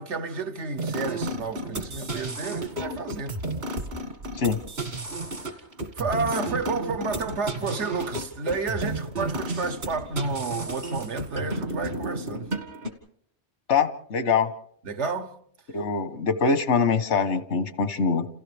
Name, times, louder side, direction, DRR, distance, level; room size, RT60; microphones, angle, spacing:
voice 1, 0.0-3.4 6.0-12.5 14.8-15.3, right 4 dB, 90° right, 1.5 m, -30 dB
sound 1, 0.8-12.9, right 1 dB, 65° right, 2.3 m, -32 dB
voice 2, 13.7-14.5 15.7-18.3, left 5 dB, 90° left, 1.4 m, -23 dB
29.5 x 28.0 x 3.4 m
omnidirectional pair, 1.1 m